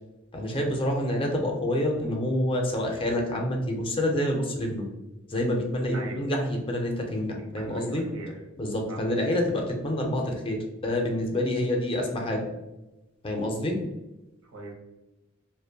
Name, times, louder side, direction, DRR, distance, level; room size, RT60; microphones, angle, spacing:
voice 1, 0.3-4.8 5.3-8.0 8.6-12.4 13.2-13.8, left 1 dB, 25° left, 1 dB, 0.4 m, -27 dB
voice 2, 5.9-6.3 7.4-8.3 8.9-9.2 14.4-14.7, right 2 dB, 85° right, 0 dB, 0.7 m, -41 dB
2.5 x 2.0 x 2.7 m, 1.0 s
head